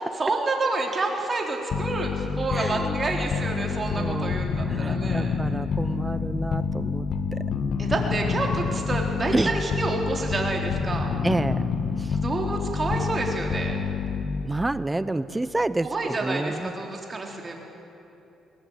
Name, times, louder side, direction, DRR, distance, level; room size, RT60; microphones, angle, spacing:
voice 1, 0.2-5.4 7.8-11.2 12.1-13.8 15.8-17.5, right 3 dB, 30° right, 1 dB, 3.8 m, -29 dB
sound 1, 1.7-14.6, left 6 dB, 60° left, 1.4 m, -28 dB
voice 2, 2.5-3.0 3.9-4.4 4.7-7.4 9.3-9.5 11.2-11.7 12.0-12.1 14.4-16.7, right 2 dB, 15° right, 15 dB, 0.7 m, -28 dB
21.5 x 19.0 x 9.2 m, 2.9 s
cardioid pair, 90°, 0 cm